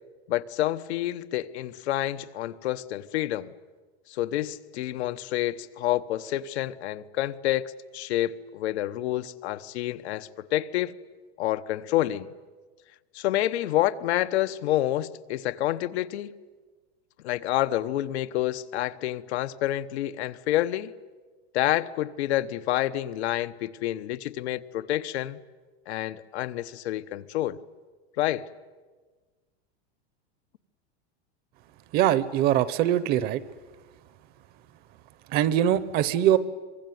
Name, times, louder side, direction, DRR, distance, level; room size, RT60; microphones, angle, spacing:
voice 1, 0.3-3.5 4.1-10.9 11.4-12.3 13.1-16.3 17.2-20.9 21.5-25.4 25.9-27.6 28.2-28.5, left 14 dB, 90° left, 1.1 m, -28 dB
voice 2, 31.9-33.4 35.3-36.4, right 11 dB, 30° right, 0.8 m, -22 dB
25.0 x 22.5 x 9.4 m
supercardioid pair, 175°, 32 cm